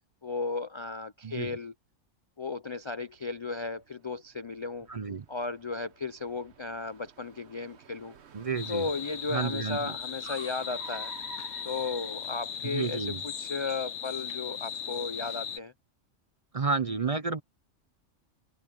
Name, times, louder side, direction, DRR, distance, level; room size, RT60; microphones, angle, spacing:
voice 1, 0.2-1.7 2.4-4.9 5.3-8.1 8.7-11.1 11.6-13.1 13.4-15.7, left 4 dB, 45° left, 0.3 m, -35 dB
voice 2, 1.2-1.5 4.9-5.2 8.3-8.8 9.3-9.9 12.6-13.2 16.5-17.4, right 4 dB, 35° right, 0.6 m, -31 dB
Car, 3.0-12.8, right 6 dB, 60° right, 1.3 m, -52 dB
sound 1, 8.6-15.6, left 8 dB, 75° left, 1.3 m, -38 dB
omnidirectional pair, 1.3 m